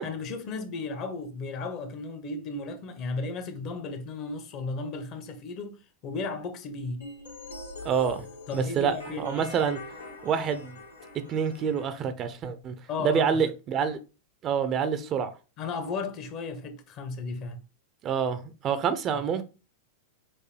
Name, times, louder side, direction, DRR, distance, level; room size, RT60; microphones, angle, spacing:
voice 1, 0.0-7.1 8.5-9.5 12.9-13.4 15.6-17.6, left 3 dB, 40° left, 0.9 m, -35 dB
sound 1, 7.0-12.0, left 2 dB, 80° left, 1.8 m, -43 dB
voice 2, 7.8-8.2 8.5-9.8 10.2-10.8 11.3-14.0 14.4-15.3 18.0-19.4, right 7 dB, 30° right, 0.6 m, -27 dB
5.9 x 2.6 x 3.2 m
figure-of-eight pair, 90°, 0 cm